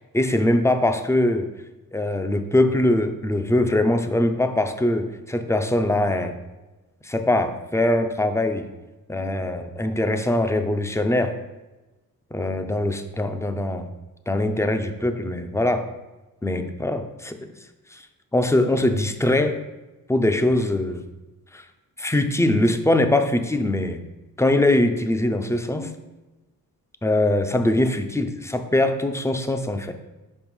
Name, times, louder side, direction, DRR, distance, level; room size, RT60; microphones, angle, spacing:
voice 1, 0.1-1.4 1.9-6.4 7.0-8.7 9.1-11.3 12.3-13.9 14.3-15.9 16.4-17.5 17.9-18.0 18.3-19.6 20.1-21.0 21.5-21.6 22.0-24.0 24.4-25.9 27.0-29.9, left 1 dB, 10° left, 7 dB, 0.5 m, -22 dB
5.8 x 5.4 x 4.7 m, 1.1 s
wide cardioid pair, 110°, 35 cm